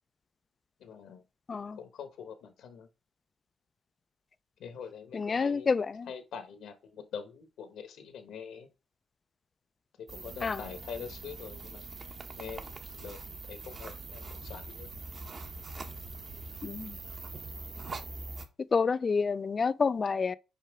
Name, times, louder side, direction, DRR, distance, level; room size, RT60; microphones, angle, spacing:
voice 1, 0.8-1.2 1.7-2.9 4.6-8.7 10.0-11.9 12.4-14.9, left 7 dB, 75° left, 1.2 m, -44 dB
voice 2, 5.1-6.1 10.4-10.6 16.6-17.0 18.7-20.4, left 5 dB, 35° left, 0.4 m, -28 dB
sound 1, 10.1-18.5, right 3 dB, 40° right, 1.2 m, -43 dB
5.7 x 4.8 x 4.8 m
cardioid pair, 90°, 0 cm